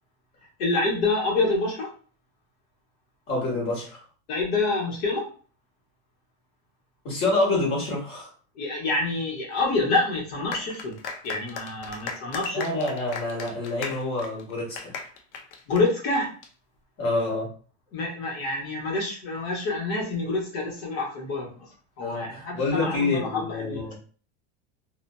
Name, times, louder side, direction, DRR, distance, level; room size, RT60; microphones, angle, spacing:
voice 1, 0.6-1.9 4.3-5.3 8.6-11.0 11.2-12.7 15.7-16.3 17.9-21.7 22.0-23.9, left 3 dB, 70° left, -2 dB, 1.3 m, -27 dB
voice 2, 3.3-4.0 7.0-8.3 12.5-14.9 17.0-17.5 22.0-23.9, left 2 dB, 40° left, -3 dB, 1.4 m, -27 dB
sound 1, 10.5-16.5, left 5 dB, 85° left, 0.7 m, -37 dB
2.7 x 2.4 x 2.2 m, 0.40 s
supercardioid pair, 165°, 34 cm